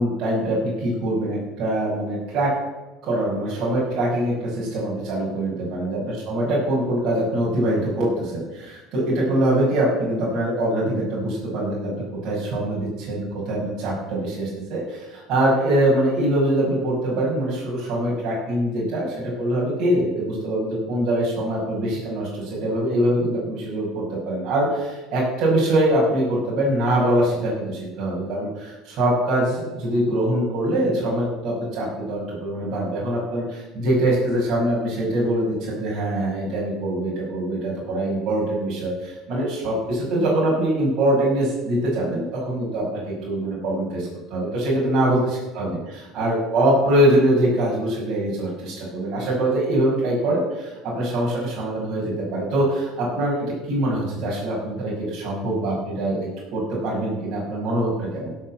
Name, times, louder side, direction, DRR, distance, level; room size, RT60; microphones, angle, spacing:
voice 1, 0.0-2.5 3.0-11.9 12.2-45.8 46.1-56.2 56.5-58.3, right 1 dB, 55° right, -6 dB, 5.8 m, -23 dB
16.5 x 7.5 x 7.6 m, 1.1 s
supercardioid pair, 115°, 0 cm